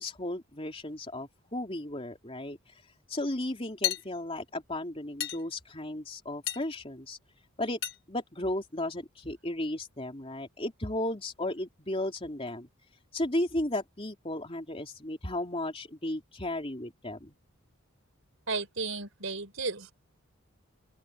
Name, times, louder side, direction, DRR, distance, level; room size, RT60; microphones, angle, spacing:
voice 1, 0.0-2.6 3.1-7.2 7.6-7.8 8.1-12.7 13.1-17.3, left 1 dB, 25° left, 3.4 m, -34 dB
sound 1, 3.8-4.0 5.2-5.4 6.5-6.7 7.8-8.0, left 13 dB, 55° left, 3.9 m, -31 dB
voice 2, 18.5-19.9, right 4 dB, 65° right, 4.9 m, -34 dB
open air
head